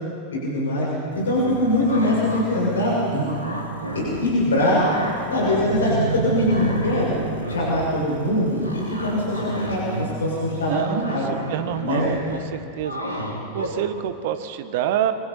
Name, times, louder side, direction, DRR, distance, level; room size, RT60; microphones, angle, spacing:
voice 1, 0.3-0.9 1.2-3.3 3.9-4.8 5.3-7.1 7.5-11.3 11.8-12.1, left 1 dB, 65° left, -5 dB, 7.0 m, -22 dB
sound 1, 1.1-10.7, right 6 dB, 65° right, 1.5 m, -33 dB
sound 2, 1.6-2.5 2.8-4.4 4.7-5.8 6.1-14.0, equal, 85° right, 3.7 m, -33 dB
voice 2, 10.6-11.2 11.5-13.2 13.5-15.1, right 11 dB, 50° right, 10 dB, 1.3 m, -27 dB
25.5 x 25.0 x 4.5 m, 2.9 s
figure-of-eight pair, 90°, 0 cm